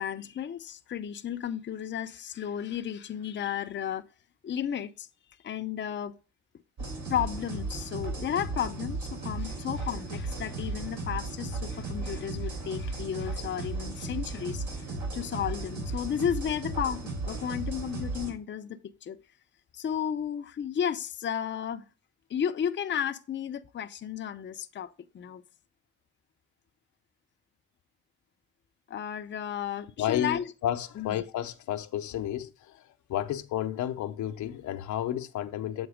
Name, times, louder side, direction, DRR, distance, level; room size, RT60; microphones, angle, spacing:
voice 1, 0.0-4.0 4.4-5.1 5.4-6.1 7.1-14.9 15.1-19.2 19.7-21.8 22.3-24.9 25.1-25.4 28.9-30.5 31.0-31.2, left 9 dB, 40° left, 0.6 m, -33 dB
sound 1, 6.8-18.3, right 2 dB, 70° right, 3.5 m, -35 dB
voice 2, 30.0-32.5 33.1-35.9, left 11 dB, 75° left, 0.7 m, -31 dB
7.9 x 4.0 x 5.0 m
cardioid pair, 90°, 30 cm